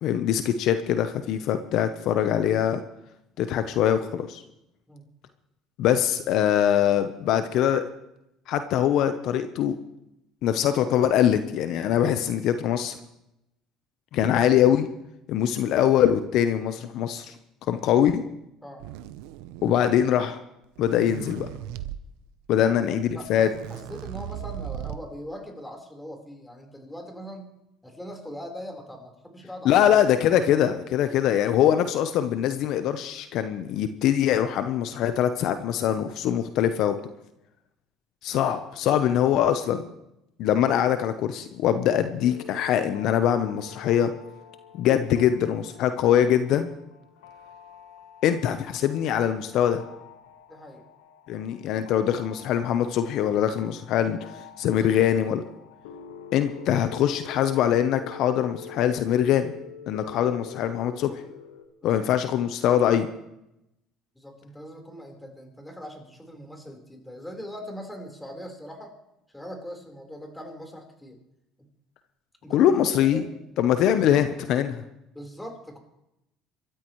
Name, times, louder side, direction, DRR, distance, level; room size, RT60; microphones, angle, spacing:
voice 1, 0.0-2.8 3.4-4.4 5.8-7.8 8.5-9.7 10.4-13.0 14.1-14.9 15.3-17.3 17.7-18.2 19.6-20.4 20.8-21.5 22.5-23.5 29.6-36.9 38.2-39.9 40.4-44.1 44.7-46.7 48.2-49.8 51.3-54.3 54.6-55.4 56.3-59.5 59.9-61.1 61.8-63.1 72.5-73.2 73.6-74.8, left 10 dB, 65° left, 9 dB, 0.9 m, -23 dB
sound 1, 18.8-20.0 20.6-22.0 22.8-22.9 23.1-25.2, right 12 dB, 85° right, 0.7 m, -38 dB
voice 2, 23.1-27.5 27.8-29.7 38.8-38.9 50.5-50.8 61.8-61.9 64.1-69.0 69.3-71.2 71.6-71.7 72.4-72.7 73.1-73.3 73.9-74.3 75.1-75.8, equal, 10° left, 3 dB, 4.2 m, -41 dB
sound 2, 42.2-61.7, left 7 dB, 90° left, 1.3 m, -46 dB
26.0 x 13.5 x 3.2 m, 0.86 s
supercardioid pair, 85°, 0 cm